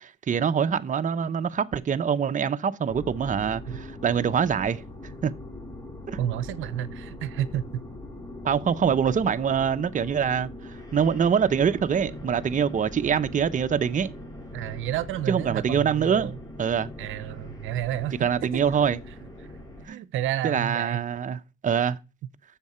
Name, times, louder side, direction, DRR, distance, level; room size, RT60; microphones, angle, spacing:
voice 1, 0.0-4.8 5.2-5.3 6.1-6.2 8.4-14.1 15.3-16.3 16.6-16.9 18.2-19.0 19.9-20.0 20.4-22.0, right 7 dB, 40° right, 0.8 m, -24 dB
sound 1, 2.9-19.9, left 1 dB, 20° left, 3.5 m, -41 dB
voice 2, 6.2-7.8 14.5-16.3 17.0-18.2 18.5-18.8 19.9-21.0, right 12 dB, 85° right, 0.7 m, -30 dB
10.5 x 7.5 x 4.4 m
cardioid pair, 90°, 20 cm